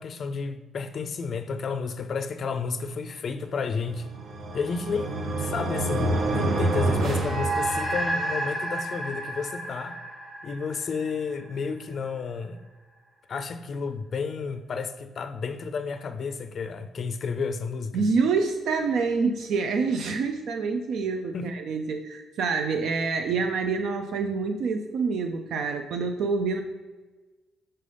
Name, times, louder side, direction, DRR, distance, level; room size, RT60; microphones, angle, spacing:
voice 1, 0.0-4.1 4.5-10.0 10.4-12.6 13.3-18.1 21.3-21.5, left 5 dB, 50° left, 9 dB, 0.4 m, -31 dB
sound 1, 3.9-8.2, right 2 dB, 60° right, 0.8 m, -28 dB
sound 2, 7.1-11.8, right 2 dB, 5° right, 0.8 m, -31 dB
voice 2, 17.9-26.6, right 4 dB, 75° right, 5 dB, 0.4 m, -27 dB
5.5 x 3.4 x 5.3 m, 1.2 s
cardioid pair, 115°, 0 cm